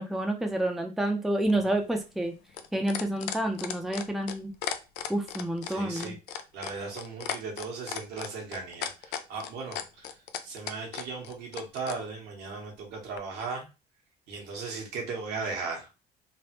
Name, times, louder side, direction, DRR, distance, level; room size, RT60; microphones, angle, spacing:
voice 1, 0.0-2.3 2.7-4.5 5.1-6.2, right 1 dB, ahead, 3 dB, 0.5 m, -29 dB
sound 1, 1.4-12.0 13.2-13.3, left 9 dB, 90° left, 0.4 m, -36 dB
voice 2, 5.6-13.7 14.3-15.9, right 4 dB, 80° right, 0 dB, 1.2 m, -37 dB
3.3 x 2.1 x 2.9 m, 0.29 s
cardioid pair, 110°, 17 cm